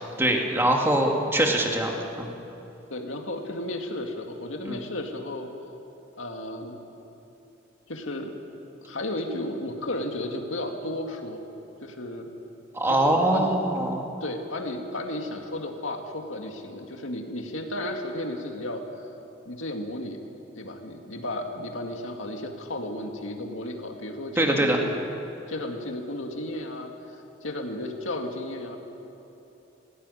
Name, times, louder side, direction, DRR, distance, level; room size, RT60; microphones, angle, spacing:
voice 1, 0.0-2.3 4.7-4.8 12.7-14.1 24.4-24.8, right 1 dB, 10° right, 1 dB, 2.0 m, -23 dB
voice 2, 2.9-5.5 6.2-6.8 7.9-8.3 8.8-11.4 11.8-12.3 12.9-13.7 14.2-19.1 19.5-20.2 20.6-25.0 25.5-26.9 27.4-28.8, left 1 dB, 85° left, 3 dB, 2.2 m, -33 dB
18.0 x 16.0 x 9.9 m, 2.9 s
head